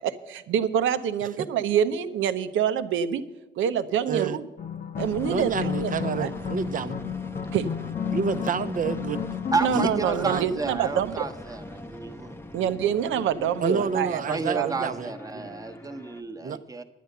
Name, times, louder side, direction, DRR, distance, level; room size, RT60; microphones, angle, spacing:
voice 1, 0.0-3.2 3.6-4.5 5.0-5.9 6.2-6.3 7.5-7.7 9.6-11.1 12.5-14.2 14.5-14.7, right 9 dB, 80° right, 0.8 m, -26 dB
voice 2, 4.1-4.4 5.3-7.0 8.1-9.2 9.7-9.8 10.3-10.4 13.6-15.5 16.4-16.6, right 6 dB, 40° right, 0.7 m, -29 dB
sound 1, 4.6-11.2, left 8 dB, 45° left, 0.8 m, -33 dB
sound 2, 5.0-16.2, left 1 dB, 10° left, 0.8 m, -41 dB
voice 3, 9.5-12.4 14.3-16.8, right 3 dB, 15° right, 1.0 m, -31 dB
10.5 x 9.3 x 6.7 m
cardioid pair, 90°, 20 cm